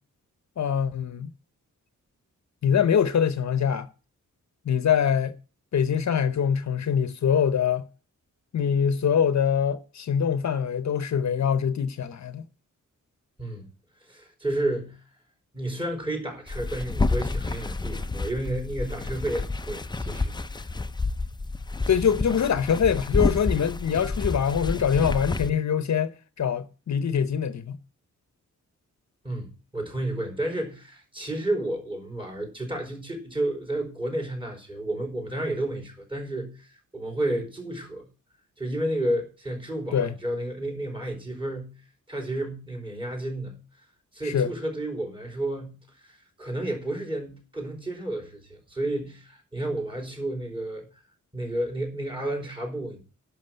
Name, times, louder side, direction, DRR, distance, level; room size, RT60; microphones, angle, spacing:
voice 1, 0.6-1.3 2.6-3.9 4.7-5.3 5.7-7.9 8.5-12.4 21.9-27.8 39.9-40.1 44.2-44.5, left 7 dB, 60° left, 0.8 m, -24 dB
voice 2, 14.0-15.0 15.5-20.3 29.2-29.5 29.7-38.0 38.6-41.7 42.1-43.6 44.1-45.8 46.0-50.9 51.3-53.0, right 1 dB, 15° right, 4.9 m, -31 dB
sound 1, 16.5-25.5, left 3 dB, 15° left, 0.5 m, -29 dB
11.0 x 6.1 x 9.2 m
wide cardioid pair, 170°, 31 cm